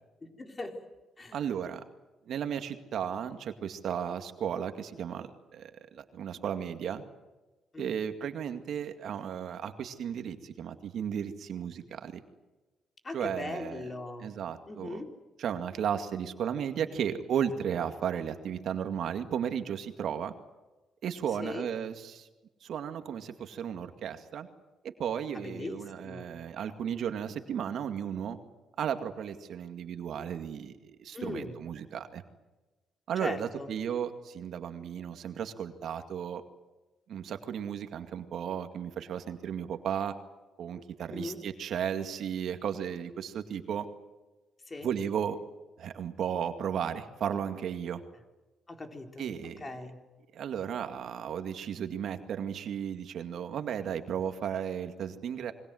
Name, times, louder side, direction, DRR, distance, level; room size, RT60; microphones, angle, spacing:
voice 1, 0.2-0.8 1.2-1.4 7.7-7.9 13.0-14.3 14.7-15.1 21.4-21.7 25.3-26.4 31.1-31.6 33.2-33.7 41.1-41.4 44.7-44.9 48.7-49.3 49.6-50.0, left 2 dB, 30° left, 4 dB, 4.3 m, -39 dB
voice 2, 1.3-1.8 2.3-7.0 7.8-12.2 13.1-13.8 14.2-15.0 15.4-20.3 21.0-22.3 22.6-24.5 24.8-28.4 28.8-32.2 33.1-36.4 37.1-40.1 40.6-43.9 44.8-45.4 45.8-48.0 49.2-49.6 50.3-55.5, right 8 dB, 70° right, 8 dB, 2.2 m, -34 dB
27.5 x 23.0 x 7.9 m, 1.1 s
cardioid pair, 90°, 0 cm